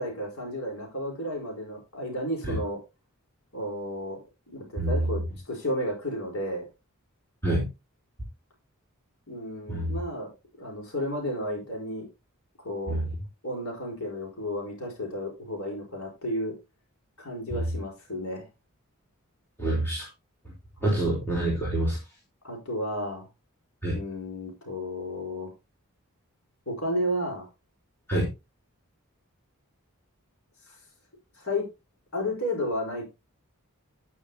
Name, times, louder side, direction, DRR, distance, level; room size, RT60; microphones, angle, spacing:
voice 1, 0.0-2.8 3.5-4.2 4.5-6.7 9.3-10.3 10.6-12.1 12.6-13.0 13.4-16.6 17.2-18.4 22.4-23.3 23.9-25.5 26.7-27.5 30.7-30.8 31.3-31.7 32.1-33.1, left 1 dB, 70° left, -1 dB, 4.4 m, -32 dB
voice 2, 4.8-5.2 7.4-7.7 9.7-10.0 12.9-13.0 17.5-17.6 19.6-20.1 20.8-22.0 23.8-24.0 28.1-28.3, right 1 dB, 10° left, -4 dB, 4.3 m, -26 dB
10.5 x 10.0 x 2.9 m, 0.25 s
head